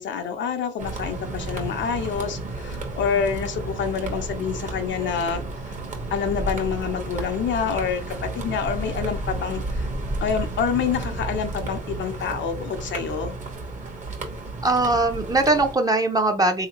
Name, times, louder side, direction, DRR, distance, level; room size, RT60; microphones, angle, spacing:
voice 1, 0.0-5.7 6.1-9.9 10.2-13.3, left 7 dB, 70° left, 6 dB, 0.7 m, -27 dB
sound 1, 0.8-15.8, right 2 dB, 40° right, 1.1 m, -32 dB
voice 2, 14.6-16.7, right 2 dB, 20° right, 5 dB, 0.7 m, -21 dB
3.4 x 2.8 x 2.9 m, 0.32 s
cardioid pair, 90°, 20 cm